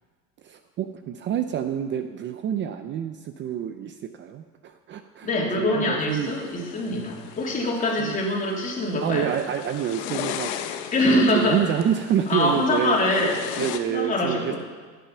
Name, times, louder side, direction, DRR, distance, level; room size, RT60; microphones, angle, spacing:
voice 1, 0.4-5.3 5.6-6.3 8.0-8.2 9.0-13.0 13.6-14.6, right 9 dB, 35° right, 8 dB, 0.6 m, -28 dB
voice 2, 5.2-9.3 10.9-11.6 12.3-13.5 13.8-14.6, left 1 dB, 25° left, -2 dB, 3.2 m, -24 dB
sound 1, 6.1-13.8, left 11 dB, 85° left, 1.1 m, -37 dB
15.5 x 9.2 x 5.6 m, 1.5 s
supercardioid pair, 125°, 32 cm